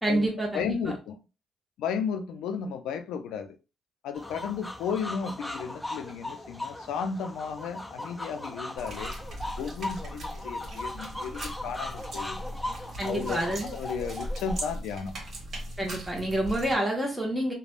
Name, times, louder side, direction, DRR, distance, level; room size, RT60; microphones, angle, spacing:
voice 1, 0.0-0.9 13.0-13.7 15.8-17.5, right 1 dB, 10° right, 0.8 m, -28 dB
voice 2, 0.5-1.2 1.8-3.6 4.0-9.1 9.6-12.4 13.0-15.2, left 6 dB, 90° left, 0.4 m, -34 dB
sound 1, 4.1-14.6, left 1 dB, 10° left, 0.5 m, -38 dB
sound 2, 8.8-16.7, right 1 dB, 55° right, 1.2 m, -39 dB
3.3 x 2.1 x 2.5 m
cardioid pair, 90°, 0 cm